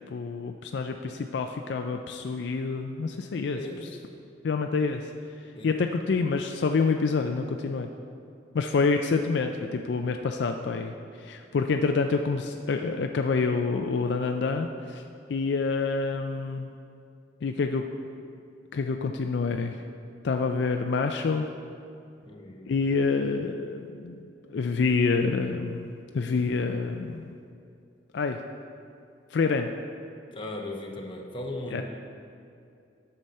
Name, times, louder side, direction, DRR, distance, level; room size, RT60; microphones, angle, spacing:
voice 1, 0.1-3.6 4.4-5.1 5.6-7.9 8.5-15.0 15.3-16.7 17.4-17.8 18.7-19.8 20.2-21.5 22.7-24.2 24.5-27.3 28.1-28.4 29.3-29.7 31.7-31.8, left 4 dB, 65° left, 5 dB, 0.4 m, -27 dB
voice 2, 3.5-4.0 5.5-5.8 8.6-8.7 22.2-22.7 30.3-31.8, left 2 dB, 30° left, 0 dB, 1.0 m, -37 dB
11.0 x 6.9 x 4.2 m, 2.5 s
head